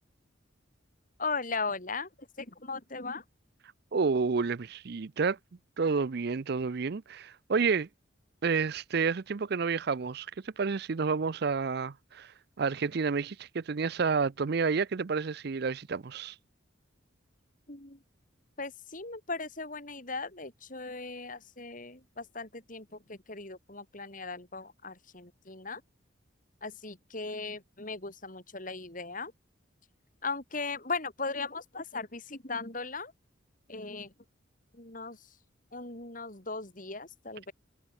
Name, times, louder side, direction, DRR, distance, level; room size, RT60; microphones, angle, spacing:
voice 1, 1.2-2.1 2.4-3.2 17.7-18.0 18.6-25.8 26.6-29.3 30.2-33.1 33.7-34.1 34.7-35.4 35.7-37.5, left 4 dB, 40° left, 3.6 m, -38 dB
voice 2, 3.9-5.4 5.8-7.9 8.4-12.3 12.6-16.3, right 5 dB, 55° right, 0.5 m, -30 dB
head